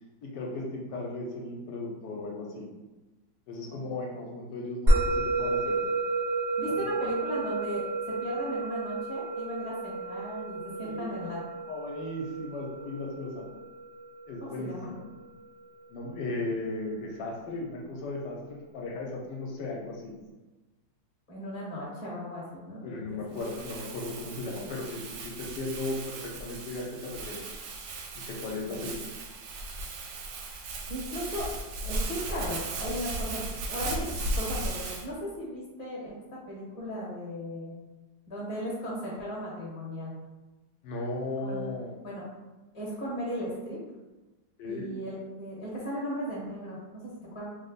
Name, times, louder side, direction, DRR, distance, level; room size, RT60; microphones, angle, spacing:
voice 1, 0.3-2.6 3.5-5.8 6.9-7.0 10.8-11.2 11.7-13.4 14.3-15.0 15.9-20.1 22.8-25.1 25.4-27.5 28.1-28.9 40.8-41.9 44.6-44.9, left 2 dB, 80° left, -2 dB, 1.2 m, -36 dB
Musical instrument, 4.9-15.5, right 2 dB, 45° right, 0.9 m, -31 dB
voice 2, 6.6-11.4 14.4-14.9 21.3-23.4 28.7-28.8 30.9-31.5 31.8-33.4 33.7-37.7 38.3-40.1 41.4-42.3 42.7-43.8 44.6-47.4, equal, 20° left, -6 dB, 1.1 m, -37 dB
Crumpling crinkling, 23.4-35.1, right 2 dB, 90° right, 1.3 m, -36 dB
3.3 x 2.0 x 3.9 m, 1.1 s
omnidirectional pair, 1.9 m